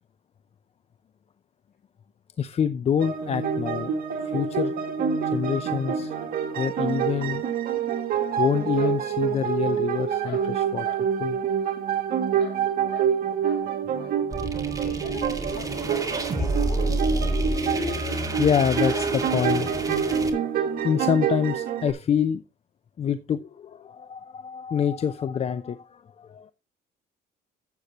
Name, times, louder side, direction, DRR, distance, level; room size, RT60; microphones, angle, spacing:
voice 1, 2.4-3.9 4.2-4.7 5.2-6.1 6.6-7.5 8.4-11.4 15.2-15.3 15.8-22.4 23.0-26.5, left 8 dB, 40° left, 0.6 m, -27 dB
sound 1, 3.0-21.9, right 7 dB, 60° right, 2.2 m, -27 dB
sound 2, 8.7-9.8 10.2-11.1 11.6-13.2 13.4-13.7 14.0-14.2 14.5-14.6 15.5-15.8 16.0-16.1 16.5-16.6 17.5-17.6 17.9-18.0 18.9-19.1 19.8-20.0, left 11 dB, 80° left, 2.5 m, -45 dB
sound 3, 14.3-20.3, right 2 dB, 20° right, 2.1 m, -29 dB
voice 2, 14.7-17.1, left 1 dB, 60° left, 6.3 m, -41 dB
11.5 x 8.2 x 2.9 m
cardioid pair, 110°, 17 cm